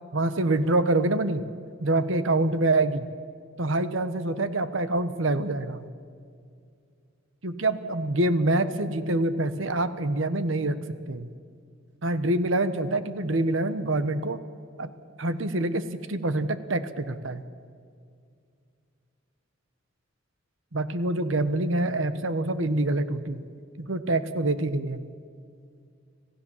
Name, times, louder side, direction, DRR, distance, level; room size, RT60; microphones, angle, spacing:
voice 1, 0.1-1.4 1.8-3.1 3.6-5.9 7.4-11.3 12.0-14.4 14.8-14.9 15.2-17.4 20.7-23.4 23.8-25.0, right 2 dB, 75° right, 12 dB, 1.2 m, -26 dB
26.0 x 16.0 x 7.3 m, 2.3 s
head